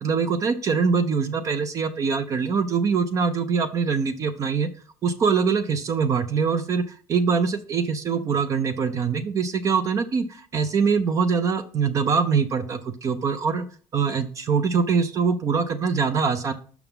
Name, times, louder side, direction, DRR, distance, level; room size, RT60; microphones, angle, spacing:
voice 1, 0.0-4.7 5.0-13.6 13.9-16.5, right 5 dB, 35° right, 12 dB, 0.5 m, -23 dB
6.9 x 5.9 x 3.6 m, 0.43 s
cardioid pair, 150°, 9 cm